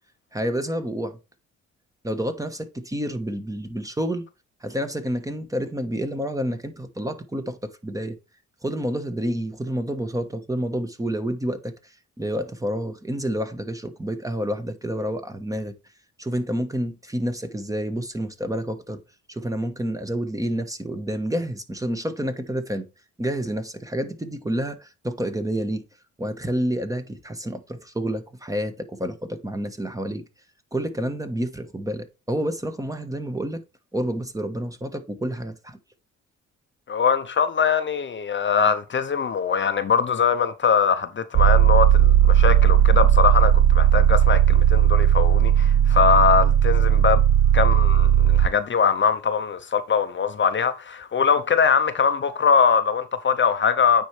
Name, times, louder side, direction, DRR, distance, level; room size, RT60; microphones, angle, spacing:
voice 1, 0.3-1.2 2.0-4.2 4.6-8.2 8.6-11.7 12.2-15.7 16.2-19.0 19.3-22.8 23.2-25.8 26.2-30.2 30.7-33.6 33.9-35.8, equal, 10° right, 1.2 m, -29 dB
voice 2, 36.9-47.2 47.5-54.0, left 6 dB, 40° left, 0.7 m, -22 dB
sound 1, 41.3-48.5, right 10 dB, 60° right, 0.6 m, -16 dB
9.2 x 4.5 x 3.3 m
cardioid pair, 90°, 30 cm